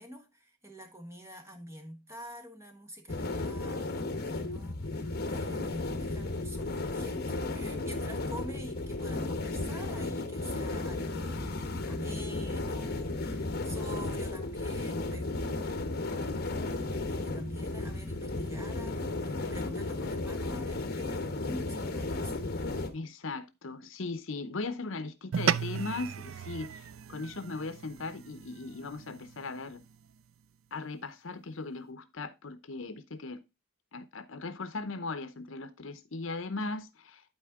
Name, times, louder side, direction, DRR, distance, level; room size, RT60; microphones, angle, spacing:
voice 1, 0.0-15.3 17.0-22.5, equal, 15° right, 1.4 m, -47 dB
sound 1, 3.1-22.9, left 2 dB, 45° left, 1.1 m, -34 dB
voice 2, 22.9-29.8 30.7-33.4 33.9-37.2, left 3 dB, 65° left, 0.8 m, -38 dB
sound 2, 25.3-29.9, right 8 dB, 65° right, 0.4 m, -35 dB
11.5 x 4.3 x 3.6 m
head